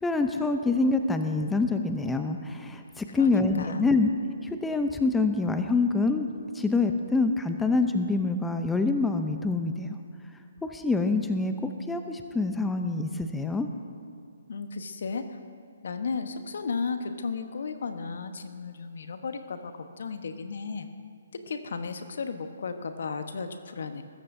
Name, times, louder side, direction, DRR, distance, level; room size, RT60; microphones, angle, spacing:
voice 1, 0.0-4.1 4.4-10.0 10.6-13.7, left 3 dB, 5° left, 6 dB, 0.7 m, -26 dB
voice 2, 3.1-3.9 14.5-15.4 15.8-20.9 21.5-24.0, left 5 dB, 65° left, 8 dB, 1.2 m, -34 dB
21.0 x 14.5 x 2.7 m, 2.3 s
figure-of-eight pair, 135°, 0 cm